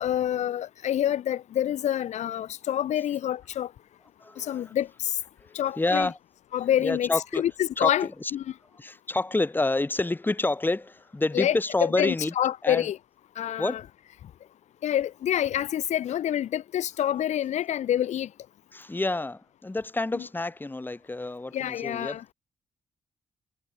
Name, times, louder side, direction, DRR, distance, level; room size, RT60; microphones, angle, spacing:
voice 1, 0.0-3.7 4.4-5.1 5.5-6.1 6.5-8.4 11.3-13.0 13.4-13.8 14.8-18.3 20.1-20.2 21.5-22.2, left 11 dB, 85° left, 2.7 m, -27 dB
voice 2, 4.2-4.7 5.4-6.2 6.8-7.4 7.8-8.3 8.8-12.3 12.6-12.9 13.6-13.8 18.7-22.3, left 2 dB, 15° left, 1.8 m, -28 dB
cardioid pair, 70°, 12 cm